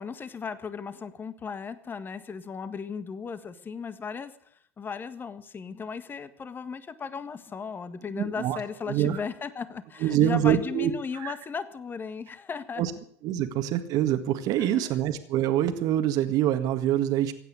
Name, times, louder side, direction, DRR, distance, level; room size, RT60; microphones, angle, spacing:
voice 1, 0.0-4.3 4.8-12.8 14.6-14.9, left 5 dB, 25° left, 12 dB, 1.7 m, -36 dB
voice 2, 8.2-8.6 8.9-9.2 10.0-11.3 12.8-12.9 13.2-17.3, right 11 dB, 55° right, 9 dB, 1.8 m, -25 dB
16.0 x 9.4 x 9.5 m, 0.67 s
hypercardioid pair, 90°, 7 cm